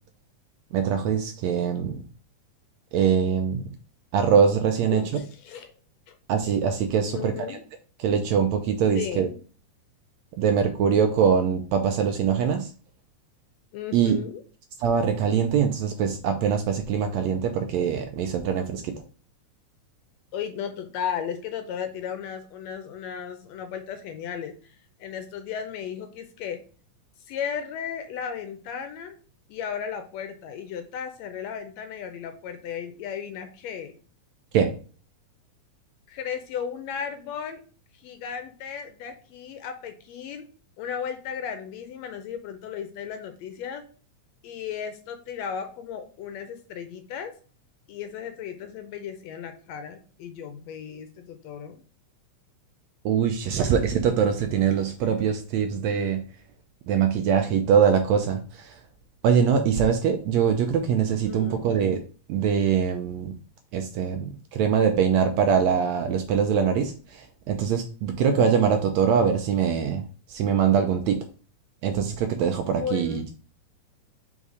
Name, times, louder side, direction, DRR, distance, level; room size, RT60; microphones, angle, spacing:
voice 1, 0.7-2.0 2.9-3.6 4.1-5.0 6.3-7.6 8.0-9.3 10.4-12.7 13.9-14.2 14.8-19.0 34.5-34.7 53.1-56.2 56.9-58.8 59.2-62.0 62.3-63.3 63.7-71.2 71.8-73.3, right 7 dB, 80° right, 6 dB, 1.6 m, -23 dB
voice 2, 4.9-5.7 6.1-6.2 7.1-7.6 9.0-9.4 13.7-14.4 20.3-26.6 27.3-29.1 29.5-34.0 36.1-37.6 37.9-40.5 40.8-43.8 44.4-47.3 47.9-51.8 61.2-61.6 72.6-73.3, left 8 dB, 75° left, 7 dB, 1.6 m, -35 dB
5.5 x 3.5 x 4.8 m, 0.39 s
omnidirectional pair, 3.6 m